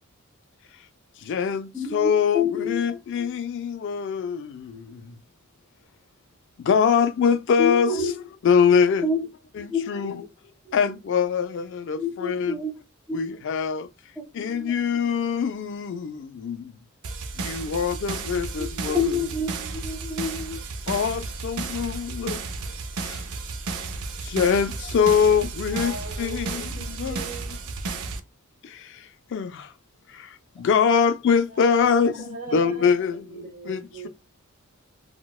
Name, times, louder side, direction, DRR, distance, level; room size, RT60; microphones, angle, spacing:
voice 1, 1.2-5.1 6.6-8.1 8.4-9.1 9.6-10.2 10.7-12.6 13.1-13.9 14.3-16.7 17.4-19.2 20.9-22.4 23.0-23.2 24.2-27.2 28.6-29.7 30.1-33.8, left 6 dB, 55° left, 0.3 m, -24 dB
voice 2, 1.7-2.8 7.6-8.1 9.0-9.3 9.7-10.3 10.7-10.8 12.0-12.7 13.1-13.4 14.2-14.7 18.6-20.6, left 4 dB, ahead, 0.5 m, -28 dB
sound 1, 17.0-28.2, right 3 dB, 85° right, 0.5 m, -33 dB
voice 3, 25.4-27.7 31.5-32.9 33.2-34.1, right 5 dB, 40° right, 0.9 m, -40 dB
4.0 x 2.2 x 2.2 m
head